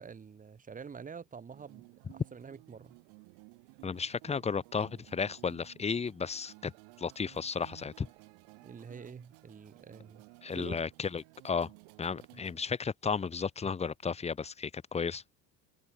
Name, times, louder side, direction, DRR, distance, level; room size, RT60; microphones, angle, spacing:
voice 1, 0.0-3.0 8.6-10.2 10.5-10.8, right 6 dB, 20° right, 1.7 m, -47 dB
sound 1, 1.5-12.7, right 37 dB, 85° right, 2.0 m, -56 dB
voice 2, 3.8-6.7 7.0-8.1 10.4-11.7 12.0-15.2, left 5 dB, 15° left, 1.0 m, -34 dB
cardioid pair, 145°, 39 cm